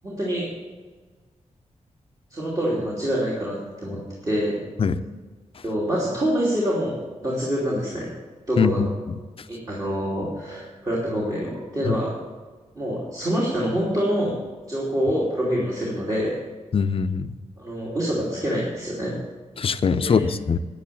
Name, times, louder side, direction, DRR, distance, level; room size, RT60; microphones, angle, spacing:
voice 1, 0.0-0.5 2.3-4.6 5.6-8.1 8.5-8.8 9.5-12.1 12.8-14.4 14.7-16.4 17.6-19.1 20.0-20.3, equal, 30° right, -6 dB, 2.9 m, -26 dB
voice 2, 8.6-8.9 11.9-12.0 16.7-17.3 19.6-20.6, left 6 dB, 45° left, 10 dB, 0.6 m, -22 dB
10.5 x 10.0 x 7.0 m, 1.4 s
wide cardioid pair, 145°, 13 cm